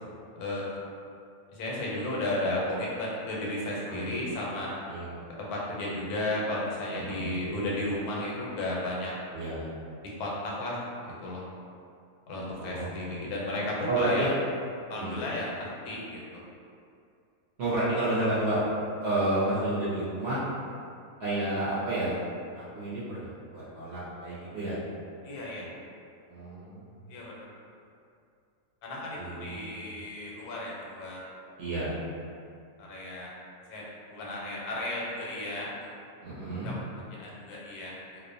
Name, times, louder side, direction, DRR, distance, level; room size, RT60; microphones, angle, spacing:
voice 1, 1.5-4.7 5.4-9.1 10.2-10.8 11.0-11.4 12.3-14.3 14.9-16.2 25.2-25.7 27.1-27.4 28.8-31.2 32.8-33.3 33.7-35.9 36.6-38.2, left 1 dB, 85° left, -4 dB, 1.1 m, -34 dB
voice 2, 6.9-7.3 9.3-9.7 12.5-13.1 13.9-14.3 15.0-15.2 17.6-18.6 19.0-20.4 21.2-22.2 22.5-24.8 26.3-26.8 29.2-29.6 31.6-31.9 36.2-36.8, right 2 dB, 65° right, -10 dB, 0.7 m, -31 dB
2.4 x 2.0 x 2.5 m, 2.4 s
omnidirectional pair, 1.6 m